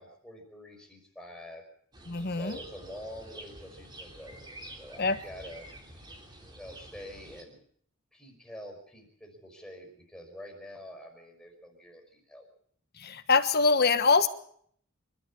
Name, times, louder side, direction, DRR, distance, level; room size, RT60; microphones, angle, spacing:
voice 1, 0.0-1.7 2.3-4.4 4.7-5.7 6.5-7.6 8.1-12.5, equal, 5° left, 0 dB, 5.1 m, -46 dB
sound 1, 1.9-7.4, right 1 dB, 20° right, 3.5 m, -48 dB
voice 2, 2.1-2.6 5.0-5.2 13.0-14.3, left 4 dB, 45° left, 11 dB, 1.3 m, -24 dB
25.5 x 12.5 x 8.6 m, 0.64 s
head